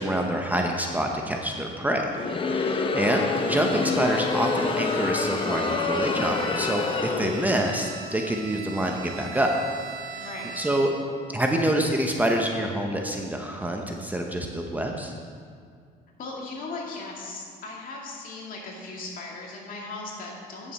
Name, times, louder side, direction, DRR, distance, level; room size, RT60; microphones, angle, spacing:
voice 1, 0.0-2.1 2.5-9.5 10.6-10.9 11.3-15.1, right 1 dB, 10° right, 1 dB, 0.8 m, -26 dB
Crowd, 2.1-7.8, left 4 dB, 30° left, 0.7 m, -27 dB
Bowed string instrument, 3.3-11.2, right 5 dB, 70° right, 2.1 m, -41 dB
voice 2, 10.2-10.6 16.2-20.7, left 3 dB, 55° left, -2 dB, 2.2 m, -38 dB
9.2 x 7.2 x 5.4 m, 2.1 s
cardioid pair, 110°, 17 cm